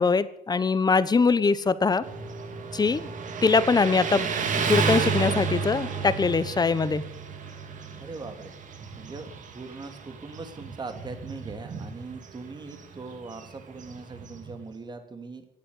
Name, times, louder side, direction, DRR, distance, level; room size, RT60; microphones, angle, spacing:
voice 1, 0.0-2.0 2.7-3.1 3.4-4.3 4.7-7.0, left 4 dB, 25° left, 16 dB, 1.0 m, -22 dB
Motorcycle, 2.0-14.6, right 5 dB, 50° right, 2.8 m, -32 dB
voice 2, 8.0-8.5 9.0-9.3 9.5-15.5, right 4 dB, 25° right, 7 dB, 2.7 m, -40 dB
17.0 x 8.8 x 9.7 m, 0.79 s
cardioid pair, 110°, 17 cm